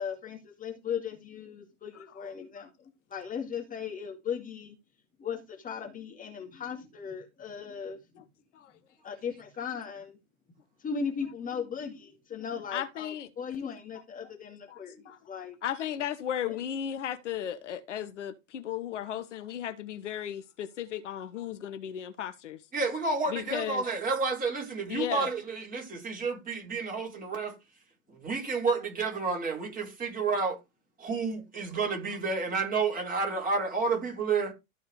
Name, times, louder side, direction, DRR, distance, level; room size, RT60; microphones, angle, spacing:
voice 1, 0.0-2.7 3.1-4.7 5.2-8.0 9.0-10.2 10.8-15.6, left 6 dB, 20° left, 2.1 m, -37 dB
voice 2, 12.7-13.3 14.7-15.2 15.6-22.6 23.3-23.8 24.9-25.3, left 10 dB, 60° left, 1.2 m, -35 dB
voice 3, 22.7-27.5 28.1-30.6 31.0-34.5, right 4 dB, 20° right, 5.0 m, -30 dB
13.5 x 4.6 x 4.9 m
figure-of-eight pair, 90°, 40 cm